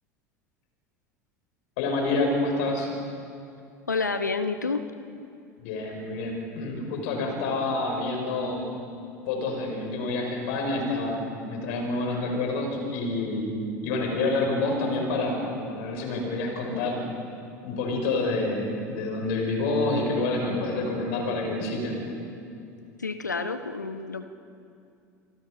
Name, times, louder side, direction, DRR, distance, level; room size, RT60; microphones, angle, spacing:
voice 1, 1.8-2.9 5.6-8.7 9.3-11.2 11.5-13.4 13.8-17.0 17.6-22.0, left 2 dB, 60° left, 1 dB, 5.2 m, -28 dB
voice 2, 3.9-4.9 7.2-7.3 23.0-24.2, left 4 dB, 85° left, 10 dB, 1.0 m, -29 dB
28.0 x 19.0 x 5.1 m, 2.5 s
figure-of-eight pair, 75°, 9 cm